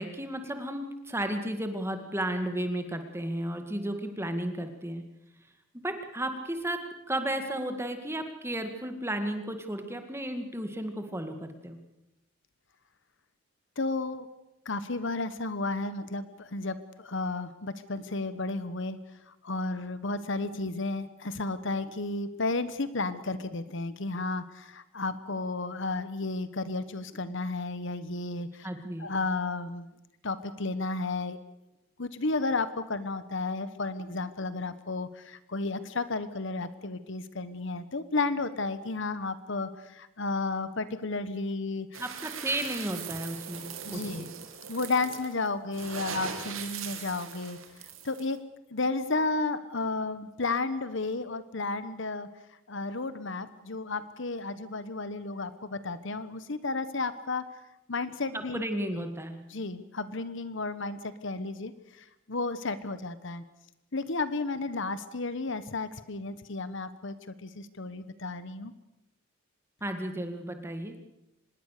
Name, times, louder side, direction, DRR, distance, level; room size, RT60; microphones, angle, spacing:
voice 1, 0.0-5.0 5.8-6.8 7.1-11.8 28.6-29.1 42.0-43.7 43.9-44.3 58.3-59.4 69.8-71.0, right 1 dB, 10° right, 6 dB, 2.1 m, -33 dB
voice 2, 13.8-14.3 14.6-19.0 19.3-28.7 29.0-29.9 30.2-31.4 32.0-41.9 43.8-44.3 44.7-47.6 48.0-48.4 48.7-52.3 52.7-57.4 57.9-59.1 59.5-61.7 62.0-63.4 63.9-68.7, left 3 dB, 60° left, 13 dB, 1.2 m, -33 dB
sound 1, 41.9-48.4, right 7 dB, 80° right, 2.9 m, -40 dB
25.0 x 20.5 x 6.7 m, 0.91 s
head